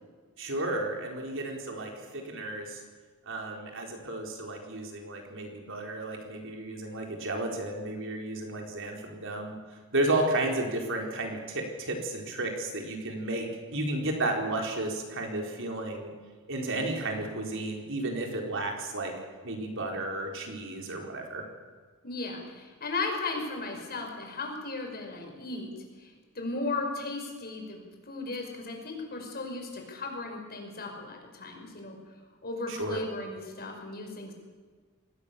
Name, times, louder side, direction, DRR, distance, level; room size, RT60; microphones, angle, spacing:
voice 1, 0.4-2.8 3.3-9.6 9.9-16.1 16.5-19.1 19.4-21.4 32.7-33.0, right 2 dB, 60° right, 2 dB, 4.4 m, -33 dB
voice 2, 22.0-25.7 26.0-32.0 32.4-34.3, left 3 dB, 45° left, 2 dB, 5.4 m, -36 dB
26.5 x 19.0 x 7.0 m, 1.5 s
head